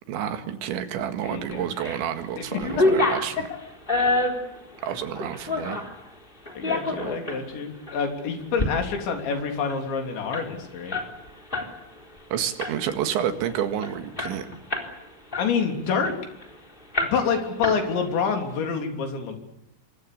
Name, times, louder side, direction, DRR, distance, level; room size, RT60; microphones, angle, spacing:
voice 1, 0.1-3.5 4.8-5.8 7.0-7.1 12.3-14.5, right 9 dB, 75° right, 8 dB, 4.0 m, -29 dB
voice 2, 1.2-1.6 2.5-3.0 6.6-11.0 15.4-16.2 17.1-19.4, left 5 dB, 70° left, 4 dB, 5.7 m, -27 dB
sound 1, 1.5-2.0 2.4-6.0 6.5-7.4 7.9-8.0 8.4-8.7 9.0-9.1 9.4-11.7 12.0-12.2 12.6-13.0 13.5-13.6 13.8-15.0 15.3-16.5 16.9-17.4 17.6-18.3, left 2 dB, 10° left, 3.3 m, -27 dB
27.0 x 24.0 x 6.9 m, 0.86 s
omnidirectional pair, 5.5 m